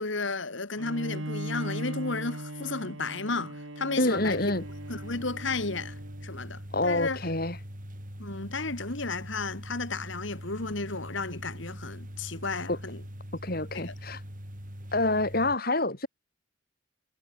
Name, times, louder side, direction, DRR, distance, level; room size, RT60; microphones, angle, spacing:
voice 1, 0.0-4.5 4.9-7.2 8.2-13.0 13.7-13.9, left 3 dB, 65° left, 2.1 m, -33 dB
Bowed string instrument, 0.8-6.4, right 1 dB, 75° right, 4.0 m, -39 dB
voice 2, 4.0-4.6 6.7-7.6 12.7-12.8 13.4-14.2 14.9-16.1, left 2 dB, 45° left, 3.9 m, -27 dB
sound 1, 4.2-15.6, equal, 40° right, 8.0 m, -42 dB
head